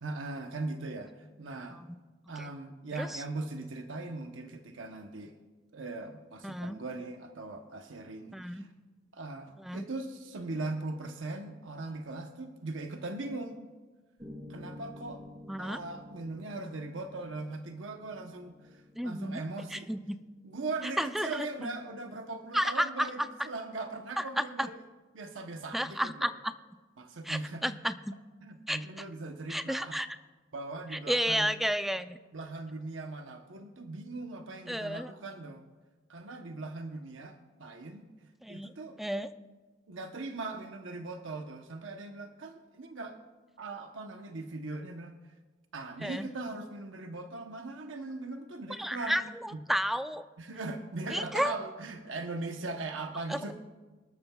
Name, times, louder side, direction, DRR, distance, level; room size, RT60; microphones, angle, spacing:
voice 1, 0.0-1.1 1.4-1.9 2.3-5.3 5.7-8.7 9.1-13.7 14.5-15.2 15.6-19.9 20.4-24.8 25.1-26.3 27.0-27.8 28.4-30.0 30.5-31.5 32.3-35.6 36.1-39.0 39.9-43.2 43.6-45.1 45.7-49.2 49.5-49.6 50.4-53.5, right 3 dB, 75° right, 5 dB, 0.9 m, -40 dB
voice 2, 6.4-6.8 8.3-8.6 9.6-9.9 15.5-15.8 19.0-19.4 19.7-20.0 21.0-21.5 22.5-23.1 24.2-24.7 25.7-26.3 27.3-28.0 28.7-28.8 29.5-30.1 31.1-32.2 34.7-35.1 38.4-38.7 39.0-39.3 46.0-46.3 48.8-50.3 51.1-51.5 53.3-53.4, equal, ahead, 10 dB, 0.4 m, -31 dB
Piano, 14.2-22.3, left 1 dB, 20° right, 3.0 m, -51 dB
24.0 x 13.0 x 2.3 m, 1.3 s
head